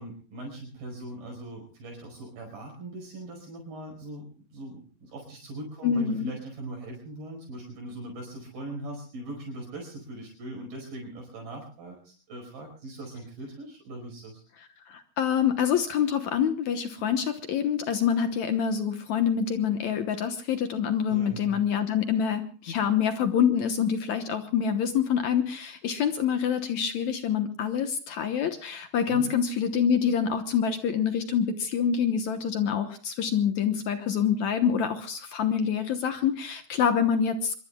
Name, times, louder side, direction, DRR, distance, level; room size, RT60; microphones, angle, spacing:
voice 1, 0.0-4.2 4.5-14.4 21.1-21.6 29.1-29.3, right 1 dB, 75° right, 0 dB, 7.0 m, -40 dB
voice 2, 5.8-6.3 14.9-37.5, left 8 dB, 65° left, 8 dB, 2.0 m, -26 dB
25.5 x 22.5 x 2.3 m, 0.40 s
omnidirectional pair, 4.3 m